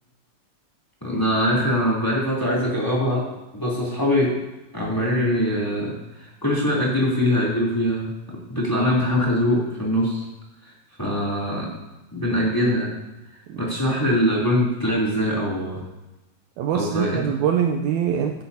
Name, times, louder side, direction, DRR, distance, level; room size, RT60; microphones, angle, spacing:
voice 1, 1.0-3.3 3.5-4.4 4.7-8.1 8.5-10.2 11.0-11.7 12.1-12.9 13.6-15.8 16.7-17.2, equal, 5° left, -5 dB, 2.5 m, -22 dB
voice 2, 16.6-18.4, right 8 dB, 85° right, 3 dB, 1.7 m, -23 dB
16.0 x 9.8 x 2.8 m, 1.0 s
omnidirectional pair, 4.0 m